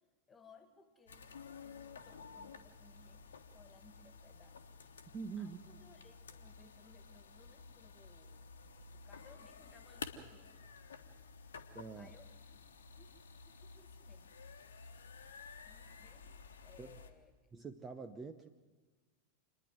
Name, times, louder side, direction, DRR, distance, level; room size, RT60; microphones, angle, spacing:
voice 1, 0.3-1.3 1.6-4.6 5.4-8.5 8.9-10.5 12.0-12.6 12.9-14.3 15.6-17.3, left 4 dB, 15° left, 8 dB, 2.1 m, -64 dB
sound 1, 1.1-17.1, left 5 dB, 65° left, 1.3 m, -53 dB
voice 2, 5.1-5.6 11.7-12.1 16.8-16.9 17.5-18.5, right 5 dB, 20° right, 10 dB, 0.9 m, -45 dB
27.5 x 10.5 x 9.3 m, 1.3 s
figure-of-eight pair, 90°, 0 cm